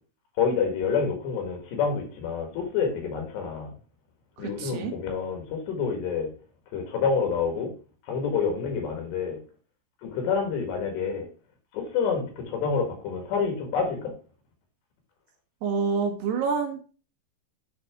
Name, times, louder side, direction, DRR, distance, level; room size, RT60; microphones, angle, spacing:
voice 1, 0.4-3.7 4.4-6.3 6.7-7.7 8.1-9.4 10.0-11.3 11.7-14.1, left 5 dB, 70° left, 3.9 m, -28 dB
voice 2, 4.4-4.9 15.6-16.9, right 5 dB, 70° right, 2.9 m, -28 dB
11.5 x 4.1 x 3.6 m
omnidirectional pair, 5.2 m